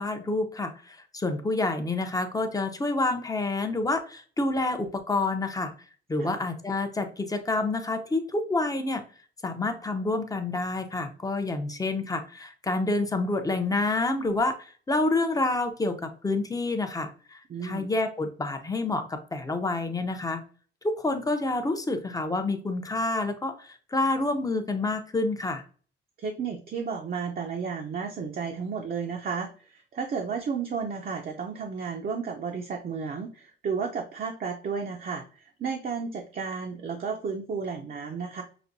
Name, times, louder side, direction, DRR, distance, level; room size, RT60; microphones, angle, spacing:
voice 1, 0.0-5.7 6.1-9.0 9.4-20.4 20.8-25.6, left 2 dB, 20° left, 6 dB, 0.7 m, -28 dB
voice 2, 17.5-17.9 26.2-38.4, right 5 dB, 45° right, 2 dB, 0.7 m, -33 dB
5.9 x 2.2 x 2.6 m, 0.40 s
cardioid pair, 90°, 20 cm